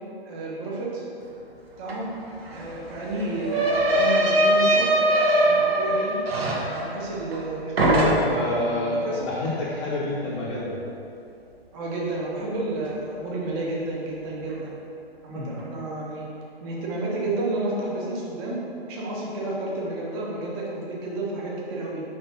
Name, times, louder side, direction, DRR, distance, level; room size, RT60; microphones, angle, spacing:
voice 1, 0.2-1.0 1.8-2.1 2.5-4.9 5.3-6.2 6.6-9.3 11.7-14.7 15.2-16.3 16.6-18.6 18.9-22.0, right 2 dB, 25° right, -4 dB, 1.0 m, -31 dB
sound 1, 1.9-2.0 2.2-7.5 7.8-8.5, right 1 dB, 75° right, 1.1 m, -22 dB
voice 2, 7.8-10.8 15.3-15.6, left 2 dB, 30° left, -6 dB, 0.8 m, -28 dB
4.7 x 4.0 x 5.6 m, 2.6 s
hypercardioid pair, 150°, 31 cm